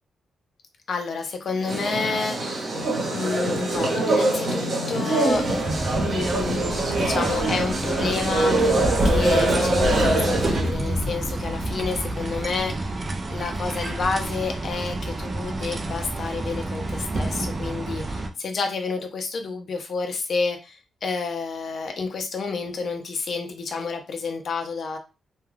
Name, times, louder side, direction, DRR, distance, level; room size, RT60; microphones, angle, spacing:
voice 1, 0.9-2.6 3.1-5.4 5.9-8.8 9.0-25.0, left 4 dB, 55° left, 4 dB, 0.5 m, -30 dB
sound 1, 1.6-10.8, right 2 dB, 50° right, 1.0 m, -24 dB
sound 2, 5.3-18.3, right 1 dB, 30° right, 0.3 m, -29 dB
2.3 x 2.2 x 3.2 m, 0.30 s
wide cardioid pair, 145°, 0 cm